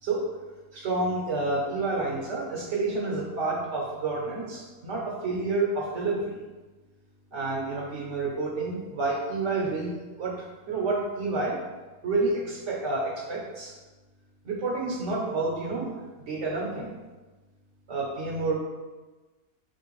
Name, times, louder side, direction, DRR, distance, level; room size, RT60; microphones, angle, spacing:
voice 1, 0.7-6.4 7.3-11.6 12.0-13.7 14.4-17.0 17.9-18.5, right 3 dB, 60° right, -2 dB, 1.0 m, -29 dB
4.6 x 3.1 x 3.0 m, 1.2 s
omnidirectional pair, 1.5 m